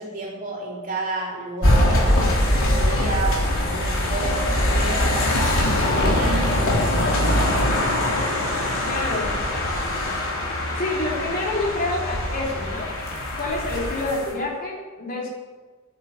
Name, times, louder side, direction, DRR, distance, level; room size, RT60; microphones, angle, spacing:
voice 1, 0.0-5.3 5.7-7.7 8.6-8.9, right 2 dB, 40° right, -4 dB, 3.8 m, -32 dB
sound 1, 1.6-14.3, left 1 dB, 65° left, 3.6 m, -22 dB
voice 2, 6.0-6.4 8.8-9.5 10.8-13.0 13.4-15.3, left 2 dB, 40° left, -2 dB, 3.1 m, -28 dB
9.9 x 9.5 x 8.7 m, 1.3 s
head